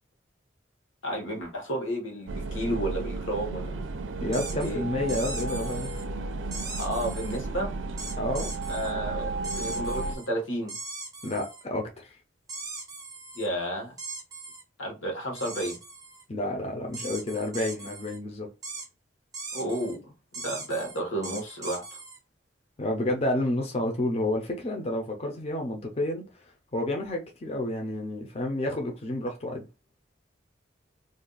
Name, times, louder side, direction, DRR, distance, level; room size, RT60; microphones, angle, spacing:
voice 1, 1.0-3.8 4.5-4.8 6.8-7.7 8.7-10.8 13.3-13.9 14.8-15.8 19.5-22.0, right 1 dB, 85° left, 1.2 m, -32 dB
sound 1, 2.3-10.2, right 3 dB, 80° right, 0.4 m, -33 dB
voice 2, 4.2-5.9 8.2-8.6 11.2-12.2 16.3-18.5 22.8-26.3 26.7-29.6, left 1 dB, 30° left, 0.6 m, -30 dB
sound 2, 4.3-4.7 5.1-6.0 6.5-7.4 8.0-8.9 9.4-10.3 10.7-11.6 12.5-13.5 14.0-14.6 15.3-16.2 16.9-18.2 18.6-18.9 19.3-20.0 20.3-22.2, right 3 dB, 20° right, 0.6 m, -40 dB
2.5 x 2.3 x 3.8 m
head